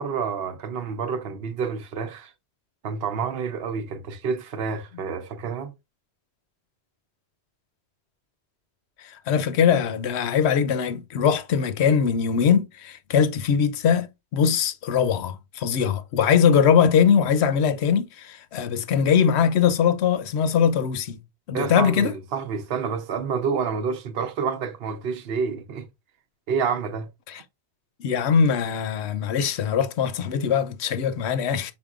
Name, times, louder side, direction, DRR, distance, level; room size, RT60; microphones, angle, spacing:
voice 1, 0.0-2.3 2.8-5.7 21.5-25.9 26.5-27.1, right 6 dB, 65° right, 0.9 m, -28 dB
voice 2, 9.0-21.2 21.5-22.1 27.3-27.4 28.0-31.7, left 7 dB, 80° left, 0.9 m, -21 dB
5.3 x 4.2 x 2.3 m
omnidirectional pair, 1.1 m